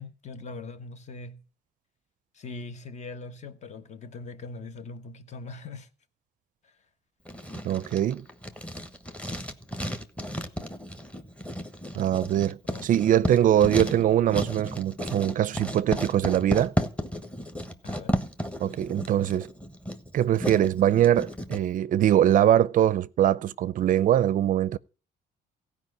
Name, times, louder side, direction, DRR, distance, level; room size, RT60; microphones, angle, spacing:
voice 1, 0.0-1.4 2.4-5.9 12.7-12.8 17.8-18.2, left 3 dB, 45° left, 1.3 m, -41 dB
Writing, 7.3-21.6, equal, 5° left, 1.2 m, -33 dB
voice 2, 7.6-8.3 12.0-16.7 18.6-19.5 20.1-24.8, right 11 dB, 50° right, 0.5 m, -22 dB
15.5 x 5.1 x 8.0 m
cardioid pair, 110°, 17 cm